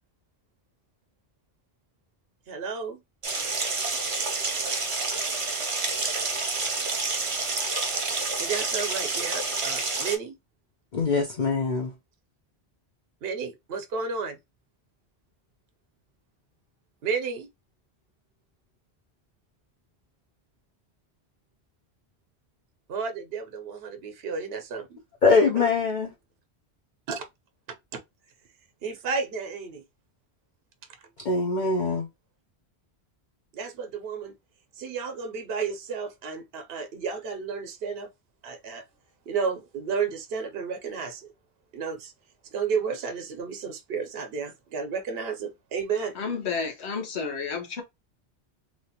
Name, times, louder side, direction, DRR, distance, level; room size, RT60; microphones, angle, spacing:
voice 1, 2.5-3.0 8.4-10.4 13.2-14.4 17.0-17.5 22.9-25.0 25.5-25.7 27.1-27.3 27.7-28.0 28.8-29.8 33.5-34.3 34.8-38.1 38.4-38.8 39.3-41.3 41.7-42.1 42.5-46.2, right 5 dB, 70° right, 0.9 m, -32 dB
sound 1, 3.2-10.2, right 3 dB, 35° right, 0.6 m, -28 dB
voice 2, 10.9-11.9 25.2-26.1 31.2-32.1, left 4 dB, 50° left, 0.7 m, -23 dB
voice 3, 46.1-47.8, left 5 dB, 80° left, 1.2 m, -31 dB
3.2 x 2.4 x 2.8 m
omnidirectional pair, 1.1 m